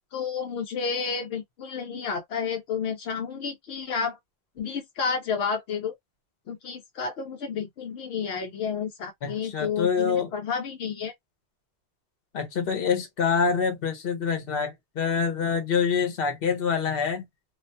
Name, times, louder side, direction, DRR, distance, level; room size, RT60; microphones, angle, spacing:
voice 1, 0.1-4.2 4.6-5.9 6.5-11.1, left 6 dB, 80° left, 0.9 m, -31 dB
voice 2, 9.2-10.3 12.3-17.3, left 6 dB, 60° left, 1.0 m, -26 dB
2.4 x 2.2 x 2.6 m
omnidirectional pair, 1.1 m